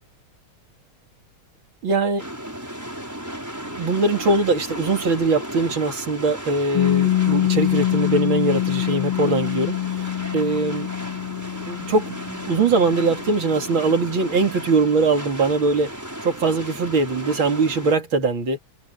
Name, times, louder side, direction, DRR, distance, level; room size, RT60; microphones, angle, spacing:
voice 1, 1.8-2.3 3.6-10.9 11.7-15.9 16.2-18.6, right 3 dB, 70° right, 3.5 m, -22 dB
sound 1, 2.2-18.0, equal, 10° right, 5.3 m, -35 dB
Piano, 6.7-14.0, left 13 dB, 60° left, 2.5 m, -25 dB
omnidirectional pair, 2.3 m